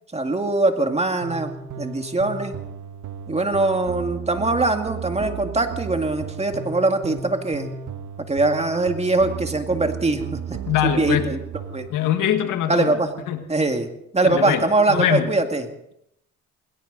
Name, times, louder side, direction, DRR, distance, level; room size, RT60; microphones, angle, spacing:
voice 1, 0.1-2.6 3.3-7.7 8.3-10.4 10.8-11.4 11.7-11.9 12.7-13.1 13.5-13.9 14.1-15.6, right 2 dB, 20° right, 5 dB, 2.1 m, -22 dB
sound 1, 1.2-11.9, right 7 dB, 70° right, 1.6 m, -34 dB
voice 2, 10.7-11.3 11.9-13.0 13.3-13.4 14.2-14.6 14.9-15.3, left 10 dB, 85° left, 7 dB, 1.9 m, -22 dB
20.5 x 17.5 x 4.0 m, 0.77 s
cardioid pair, 90°, 30 cm